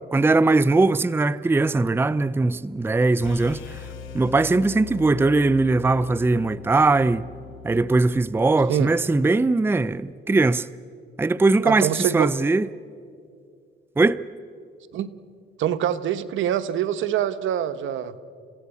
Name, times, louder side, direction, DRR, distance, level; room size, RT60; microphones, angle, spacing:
voice 1, 0.1-3.8 4.1-7.3 7.6-10.7 11.2-12.7 14.0-14.2, right 3 dB, 10° right, 0.5 m, -20 dB
sound 1, 3.2-9.3, left 5 dB, 90° left, 2.6 m, -40 dB
voice 2, 11.6-12.4 14.9-15.1 15.6-18.2, right 10 dB, 80° right, 1.1 m, -25 dB
30.0 x 16.5 x 8.3 m
cardioid pair, 90°, 20 cm